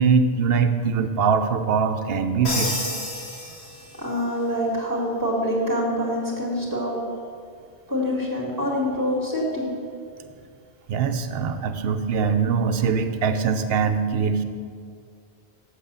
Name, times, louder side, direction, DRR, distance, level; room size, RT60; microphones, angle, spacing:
voice 1, 0.0-2.8 10.9-14.4, right 5 dB, 70° right, 8 dB, 0.8 m, -22 dB
Crash cymbal, 2.4-4.2, left 1 dB, 75° left, 2.1 m, -30 dB
voice 2, 4.0-7.0 7.9-9.7, equal, 20° right, -2 dB, 2.0 m, -25 dB
7.8 x 6.4 x 6.7 m, 2.2 s
omnidirectional pair, 1.1 m